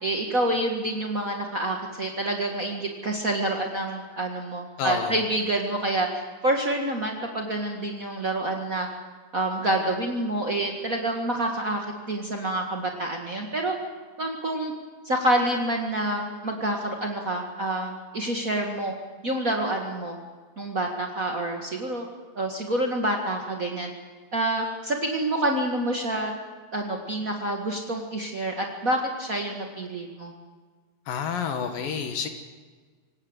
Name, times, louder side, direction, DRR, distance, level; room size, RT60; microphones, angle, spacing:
voice 1, 0.0-8.9 9.3-13.7 14.2-14.7 15.0-18.9 19.2-20.2 20.6-22.1 22.3-23.9 24.3-26.3 26.7-30.3, right 1 dB, 70° right, 2 dB, 0.7 m, -27 dB
voice 2, 4.8-5.2 31.1-32.3, left 7 dB, 65° left, 7 dB, 2.8 m, -29 dB
25.0 x 19.0 x 8.1 m, 1.5 s
omnidirectional pair, 4.9 m